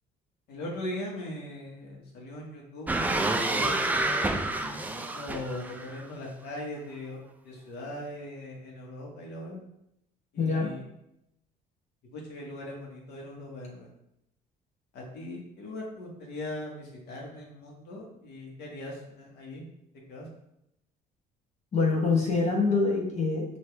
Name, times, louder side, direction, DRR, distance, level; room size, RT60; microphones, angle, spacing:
voice 1, 0.5-2.9 3.2-4.3 5.0-9.6 10.3-10.8 12.1-13.9 14.9-19.6 20.1-20.3, left 1 dB, 80° left, -1 dB, 1.3 m, -40 dB
sound 1, 2.9-6.0, right 2 dB, 10° right, 0.4 m, -28 dB
voice 2, 10.4-10.7 21.7-23.4, left 4 dB, 40° left, -1 dB, 1.0 m, -25 dB
4.8 x 2.8 x 3.2 m, 0.81 s
cardioid pair, 110°, 17 cm